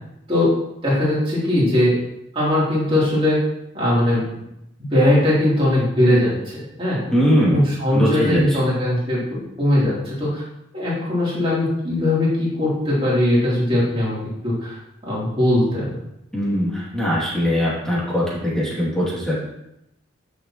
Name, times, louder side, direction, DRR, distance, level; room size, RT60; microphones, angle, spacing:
voice 1, 0.8-1.9 2.3-3.4 3.7-4.2 4.8-7.0 7.5-10.4 10.7-14.2 14.4-16.0, left 1 dB, 25° right, -7 dB, 3.3 m, -20 dB
voice 2, 7.1-7.7 7.9-8.4 16.3-19.4, equal, 5° left, -7 dB, 2.6 m, -21 dB
10.5 x 6.7 x 3.0 m, 0.83 s
head